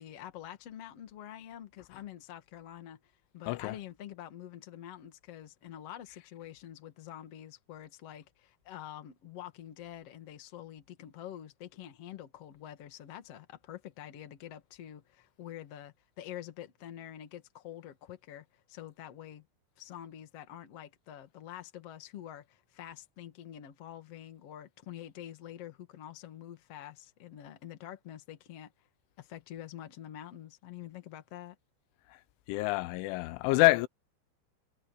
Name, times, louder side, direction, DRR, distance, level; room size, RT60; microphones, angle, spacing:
voice 1, 0.0-3.0 3.3-19.5 19.8-28.7 29.2-31.6, left 11 dB, 50° left, 1.9 m, -46 dB
voice 2, 32.5-33.9, left 21 dB, 80° left, 3.0 m, -26 dB
omnidirectional pair, 5.7 m